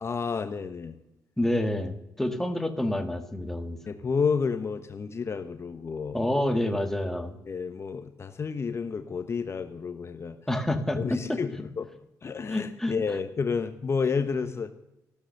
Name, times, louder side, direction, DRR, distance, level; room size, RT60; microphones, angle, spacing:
voice 1, 0.0-1.0 3.9-6.2 7.5-10.4 10.9-11.9 12.2-14.7, left 5 dB, 40° left, 8 dB, 1.1 m, -30 dB
voice 2, 1.4-3.8 6.1-7.4 10.5-11.4 12.5-12.9, left 1 dB, 5° left, 6 dB, 1.8 m, -28 dB
15.0 x 12.5 x 6.6 m, 0.88 s
cardioid pair, 100°, 7 cm